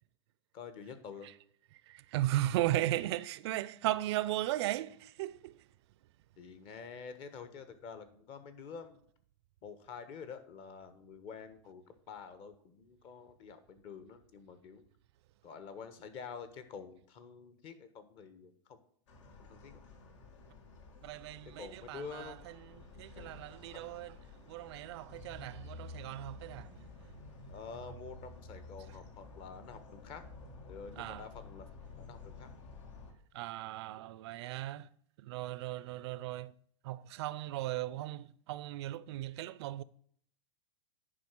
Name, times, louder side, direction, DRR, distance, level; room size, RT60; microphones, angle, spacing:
voice 1, 0.5-1.3 6.4-9.0 9.6-14.8 15.4-18.8 19.4-19.8 21.6-22.4 23.7-23.9 27.5-30.2 30.7-31.7 32.0-32.5, left 6 dB, 35° left, 1.2 m, -48 dB
voice 2, 1.7-5.7 21.0-24.2 24.5-27.1 31.0-31.3 33.3-34.9 35.2-36.5 36.8-39.8, right 15 dB, 55° right, 0.5 m, -37 dB
sound 1, 19.1-33.1, left 2 dB, 70° left, 2.3 m, -51 dB
10.0 x 5.0 x 6.2 m
supercardioid pair, 150°, 16 cm